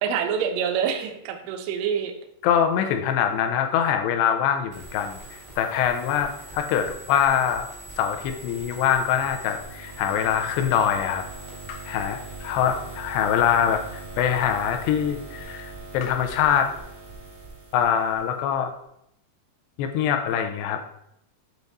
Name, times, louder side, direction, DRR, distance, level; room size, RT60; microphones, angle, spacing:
voice 1, 0.0-2.1, right 7 dB, 85° right, 4 dB, 1.9 m, -26 dB
voice 2, 2.4-5.2 5.6-7.7 8.0-11.2 11.7-13.8 14.2-16.7 17.7-18.7 19.8-20.9, left 9 dB, 85° left, 6 dB, 2.7 m, -23 dB
sound 1, 4.7-18.5, right 3 dB, 55° right, 0.6 m, -41 dB
7.9 x 3.6 x 4.0 m, 0.77 s
omnidirectional pair, 4.8 m